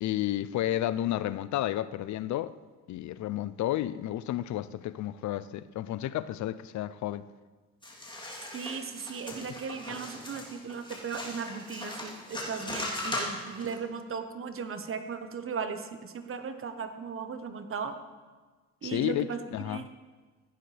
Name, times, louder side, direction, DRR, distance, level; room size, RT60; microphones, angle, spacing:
voice 1, 0.0-2.5 2.9-7.3 18.8-19.9, left 13 dB, 70° left, 0.5 m, -31 dB
sound 1, 7.8-13.7, left 1 dB, 15° left, 3.1 m, -38 dB
voice 2, 8.5-18.0 18.8-19.4 19.7-19.8, right 6 dB, 45° right, 1.1 m, -37 dB
15.0 x 10.0 x 3.3 m
cardioid pair, 90°, 30 cm